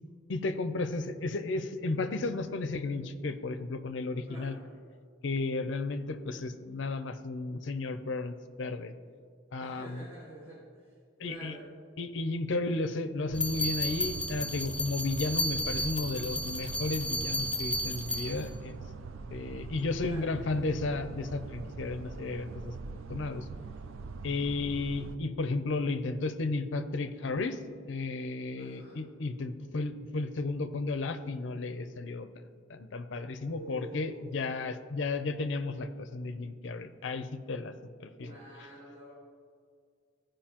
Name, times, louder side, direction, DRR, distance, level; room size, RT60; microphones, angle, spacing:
voice 1, 0.3-4.5 5.2-8.9 9.5-10.1 11.2-11.6 12.0-18.8 19.3-22.7 23.1-23.4 24.2-27.6 27.9-32.3 32.7-37.7 38.0-38.4, left 3 dB, 65° left, 10 dB, 0.5 m, -33 dB
voice 2, 9.6-10.9 11.2-11.7 20.0-20.3 28.6-29.0 33.4-34.2 38.2-39.1, equal, 25° right, -7 dB, 1.5 m, -47 dB
sound 1, 13.3-18.5, left 1 dB, 5° left, 0.4 m, -33 dB
sound 2, 13.3-25.2, right 4 dB, 85° right, 0.4 m, -42 dB
14.5 x 5.0 x 2.9 m, 2.1 s
head